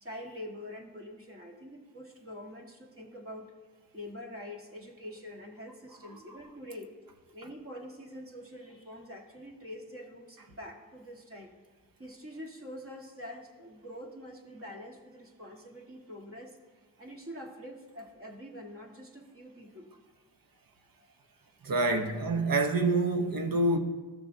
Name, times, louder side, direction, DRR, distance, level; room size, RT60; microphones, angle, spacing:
voice 1, 0.0-3.5 3.9-7.0 7.3-11.6 12.0-16.6 17.0-19.9, equal, 35° right, 1.8 m, -45 dB
voice 2, 21.6-23.8, right 2 dB, 60° right, 1.0 m, -27 dB
13.0 x 6.6 x 2.8 m
cardioid pair, 50°, 39 cm